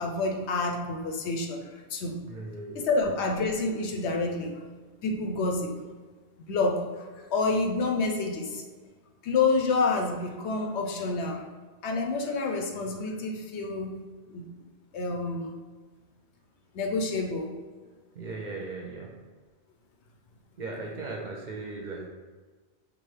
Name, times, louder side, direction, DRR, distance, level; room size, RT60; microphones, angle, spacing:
voice 1, 0.0-2.2 2.7-4.6 5.0-5.7 6.5-8.6 9.2-11.4 11.8-14.0 14.3-14.5 14.9-15.5 16.7-17.5, left 3 dB, 85° left, 2 dB, 0.9 m, -28 dB
voice 2, 2.3-2.9 18.1-19.2 20.6-22.1, right 3 dB, 55° right, 0 dB, 0.6 m, -37 dB
5.3 x 2.5 x 3.2 m, 1.4 s
omnidirectional pair, 1.1 m